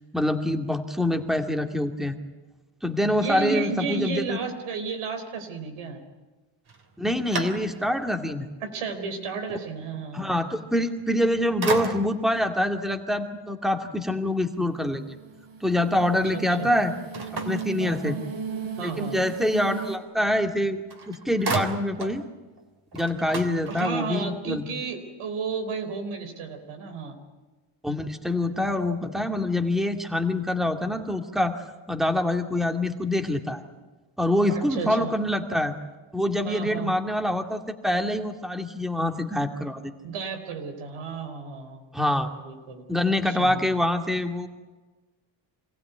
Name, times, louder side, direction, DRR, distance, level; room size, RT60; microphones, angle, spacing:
voice 1, 0.1-2.2 2.8-4.4 7.0-8.5 10.1-15.2 15.6-16.9 17.3-18.2 18.8-20.8 21.1-22.3 22.9-24.6 27.8-31.6 31.9-33.6 34.2-35.7 36.1-39.9 41.9-42.4 42.9-44.5, left 1 dB, ahead, 5 dB, 2.3 m, -25 dB
voice 2, 3.2-6.0 8.6-10.3 16.3-16.7 17.8-18.2 18.8-19.2 23.7-27.2 34.5-35.1 36.4-36.9 40.0-41.8 42.3-42.8 43.3-43.6, right 5 dB, 85° right, 5 dB, 4.3 m, -33 dB
sound 1, 6.7-8.1 8.6-8.7 11.0-11.3 11.6-12.4 17.1-18.4 20.5-20.6 20.9-22.2 22.6-22.7 22.9-24.2, right 4 dB, 50° right, 3.6 m, -33 dB
sound 2, 14.5-20.0, right 6 dB, 65° right, 4.1 m, -36 dB
26.0 x 16.0 x 9.5 m, 1.2 s
cardioid pair, 85°, 49 cm